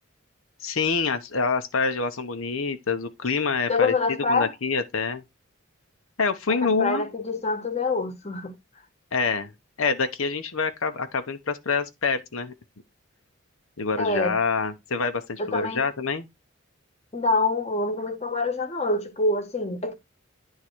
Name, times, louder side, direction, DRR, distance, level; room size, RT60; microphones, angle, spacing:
voice 1, 0.6-5.2 6.2-7.1 9.1-9.5 9.8-12.5 13.8-16.3, left 4 dB, 80° left, 0.9 m, -26 dB
voice 2, 3.7-4.5 6.5-8.5 14.0-14.3 15.4-15.8 17.1-19.9, left 3 dB, 30° left, 1.2 m, -26 dB
9.9 x 3.7 x 4.4 m
head